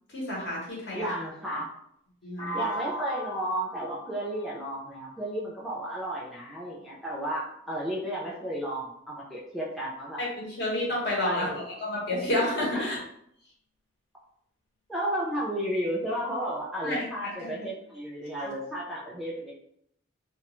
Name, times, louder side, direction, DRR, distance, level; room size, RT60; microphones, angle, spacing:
voice 1, 0.1-1.1 2.2-2.7 10.2-13.0 16.8-17.5 18.4-18.5, left 1 dB, 50° left, -4 dB, 1.0 m, -30 dB
voice 2, 0.9-1.7 2.5-10.2 11.2-11.6 12.7-12.9 14.9-19.5, right 1 dB, ahead, -6 dB, 0.4 m, -33 dB
sound 1, 2.4-6.3, left 1 dB, 25° left, 0.8 m, -39 dB
2.4 x 2.2 x 3.0 m, 0.71 s
head